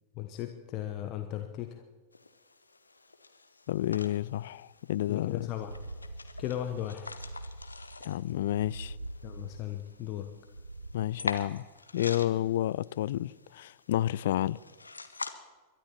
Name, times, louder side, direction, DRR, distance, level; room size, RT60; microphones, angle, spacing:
voice 1, 0.1-1.8 5.1-5.8 6.4-7.1 9.2-10.3, left 12 dB, 40° left, 1.0 m, -36 dB
sound 1, 2.1-15.3, left 3 dB, 80° left, 1.0 m, -45 dB
voice 2, 3.7-5.5 8.0-9.0 10.9-11.7 11.9-14.6, left 13 dB, 55° left, 0.3 m, -30 dB
sound 2, 5.6-11.6, right 2 dB, 85° right, 0.4 m, -45 dB
22.0 x 12.0 x 4.3 m
figure-of-eight pair, 90°, 0 cm